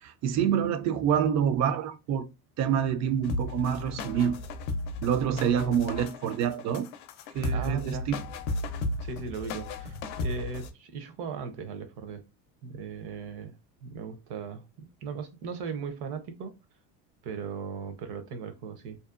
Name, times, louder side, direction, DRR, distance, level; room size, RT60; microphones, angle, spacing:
voice 1, 0.0-2.3 2.6-4.4 5.0-6.9 7.3-8.2, right 8 dB, 40° right, 0.4 m, -27 dB
sound 1, 3.2-10.7, left 2 dB, 70° left, 0.6 m, -34 dB
voice 2, 7.5-8.1 9.0-12.2 12.6-16.5 17.2-19.0, right 5 dB, 55° right, 0.8 m, -38 dB
2.7 x 2.0 x 2.4 m
supercardioid pair, 95°, 46 cm